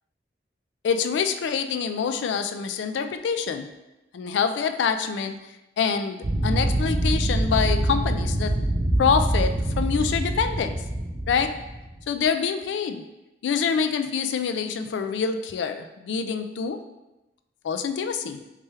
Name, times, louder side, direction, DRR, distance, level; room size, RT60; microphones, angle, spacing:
voice 1, 0.8-3.7 4.1-5.4 5.8-8.6 9.0-10.8 11.3-11.6 12.1-13.0 13.4-16.8 17.6-18.4, left 6 dB, 70° left, 8 dB, 0.3 m, -26 dB
sound 1, 6.2-12.0, right 1 dB, 55° right, 0.7 m, -25 dB
3.3 x 3.2 x 3.2 m, 0.99 s
head